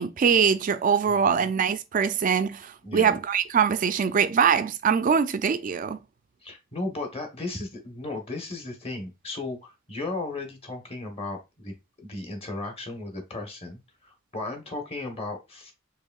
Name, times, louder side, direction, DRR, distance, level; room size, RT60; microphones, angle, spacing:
voice 1, 0.0-6.0, right 6 dB, 40° right, 0.3 m, -23 dB
voice 2, 2.8-3.2 6.4-11.7 12.0-15.7, left 2 dB, 25° left, 0.9 m, -35 dB
4.6 x 3.1 x 2.3 m
head